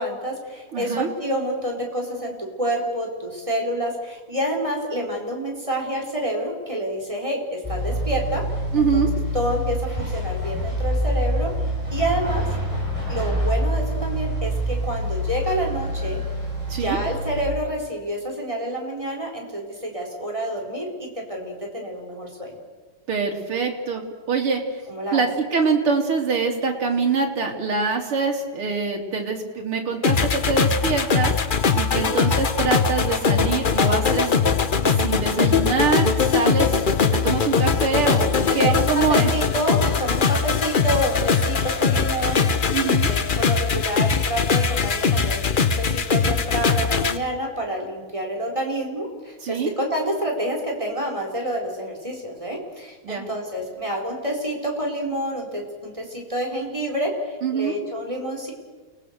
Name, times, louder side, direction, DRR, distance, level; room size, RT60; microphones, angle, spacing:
voice 1, 0.0-2.3 2.6-8.4 8.8-9.0 9.3-11.5 11.9-12.4 13.1-16.2 16.8-22.6 24.9-25.2 31.9-32.1 38.5-42.4 43.0-58.5, right 1 dB, 15° right, 0 dB, 4.4 m, -28 dB
voice 2, 0.7-1.1 8.7-9.1 16.7-17.0 23.1-24.0 24.3-24.8 25.1-31.3 31.7-34.3 34.9-36.7 37.1-39.3 42.7-43.1 49.4-49.7 53.0-53.3 57.4-57.8, right 5 dB, 80° right, 1 dB, 3.8 m, -24 dB
sound 1, 7.6-17.4, equal, 15° left, 7.8 m, -26 dB
sound 2, 30.0-47.2, left 5 dB, 60° left, 0.5 m, -21 dB
29.0 x 20.0 x 6.7 m, 1.4 s
omnidirectional pair, 2.4 m